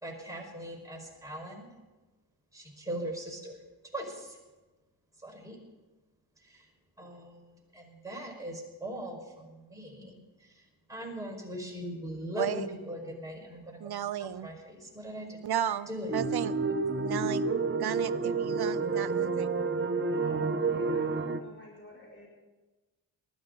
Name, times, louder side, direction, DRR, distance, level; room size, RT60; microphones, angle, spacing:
voice 1, 0.0-1.7 2.5-3.6 3.9-4.4 5.2-5.6 6.5-6.6 7.0-10.2 10.9-13.8 14.2-15.4 15.9-16.1 16.6-16.8, equal, 5° right, 5.0 m, -40 dB
voice 2, 12.4-12.7 13.8-14.5 15.4-16.5 17.0-17.5 17.8-19.5, right 10 dB, 55° right, 0.7 m, -34 dB
sound 1, 16.1-21.4, right 4 dB, 25° right, 1.0 m, -29 dB
voice 3, 20.0-21.1 21.4-22.3, left 2 dB, 25° left, 6.6 m, -49 dB
19.5 x 13.0 x 3.9 m
cardioid pair, 65°, 46 cm